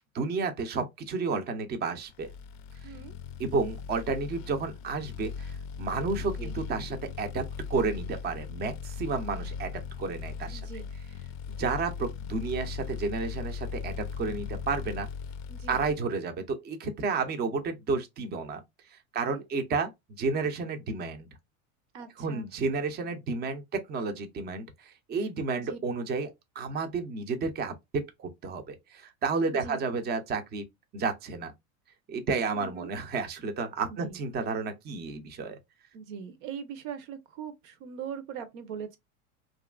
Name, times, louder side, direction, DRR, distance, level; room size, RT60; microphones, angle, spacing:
voice 1, 0.1-2.3 2.8-2.9 3.4-7.4 7.7-9.7 10.0-10.6 11.5-15.1 15.7-18.6 18.9-21.3 22.2-26.3 26.6-30.7 30.9-31.5 32.1-35.6, right 4 dB, 25° right, 0.5 m, -31 dB
sound 1, 2.2-16.0, left 6 dB, 45° left, 0.4 m, -38 dB
voice 2, 2.8-3.1 6.2-6.6 10.5-10.9 15.5-15.8 19.2-19.5 21.9-22.5 25.5-25.8 29.4-29.8 32.5-32.9 33.9-34.2 35.9-39.0, right 7 dB, 70° right, 0.8 m, -41 dB
2.8 x 2.4 x 2.2 m
hypercardioid pair, 105°, 42 cm